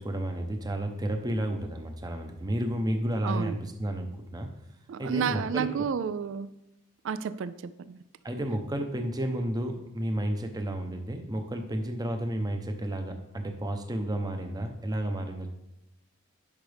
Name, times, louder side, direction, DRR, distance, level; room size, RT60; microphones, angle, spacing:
voice 1, 0.0-4.5 5.0-5.7 8.2-15.5, right 1 dB, 20° right, 5 dB, 0.8 m, -31 dB
voice 2, 3.2-3.6 4.9-6.5 7.0-8.0, right 7 dB, 60° right, 14 dB, 0.3 m, -31 dB
10.5 x 5.8 x 3.4 m, 0.89 s
head